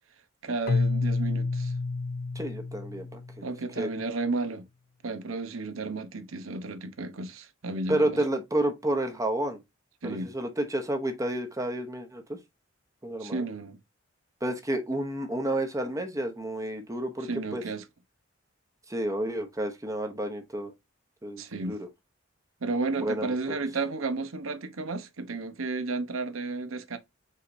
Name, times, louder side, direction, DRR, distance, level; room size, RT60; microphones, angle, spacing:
voice 1, 0.4-1.7 3.4-4.7 5.0-8.2 10.0-10.3 13.2-13.8 17.2-17.8 21.4-21.8 22.6-27.0, right 3 dB, 90° right, 0.8 m, -33 dB
Keyboard (musical), 0.7-3.6, left 3 dB, 45° left, 0.4 m, -29 dB
voice 2, 2.3-3.4 3.8-3.9 7.9-9.6 10.0-12.4 13.0-13.4 14.4-17.6 18.9-20.7 21.2-21.9 23.0-23.6, right 1 dB, 15° right, 0.8 m, -30 dB
4.9 x 4.1 x 2.6 m
head